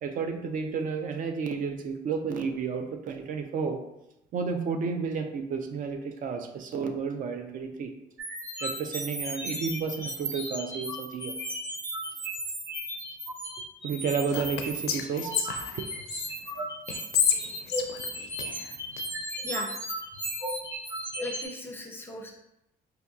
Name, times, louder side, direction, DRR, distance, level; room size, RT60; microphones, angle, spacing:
voice 1, 0.0-3.8 4.3-7.9 8.6-11.3 13.8-15.8, right 5 dB, 50° right, 5 dB, 0.4 m, -31 dB
sound 1, 8.2-21.5, right 1 dB, 15° right, 1.3 m, -35 dB
Whispering, 14.3-16.3 16.9-19.0, left 8 dB, 80° left, 0.4 m, -30 dB
voice 2, 21.2-22.3, left 2 dB, 10° left, 1 dB, 0.5 m, -37 dB
4.4 x 2.7 x 2.3 m, 0.87 s
cardioid pair, 110°, 17 cm